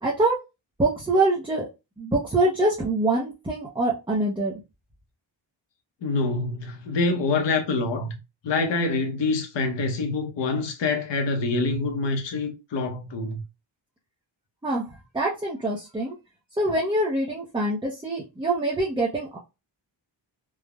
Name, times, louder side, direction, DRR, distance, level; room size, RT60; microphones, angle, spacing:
voice 1, 0.0-0.4 0.8-1.7 2.0-4.5 14.6-14.9 15.1-16.1 16.6-19.4, right 2 dB, 10° right, 0.4 m, -24 dB
voice 2, 6.0-8.1 8.4-13.4, left 3 dB, 65° left, 0.8 m, -26 dB
3.3 x 2.0 x 2.2 m
wide cardioid pair, 155°, 47 cm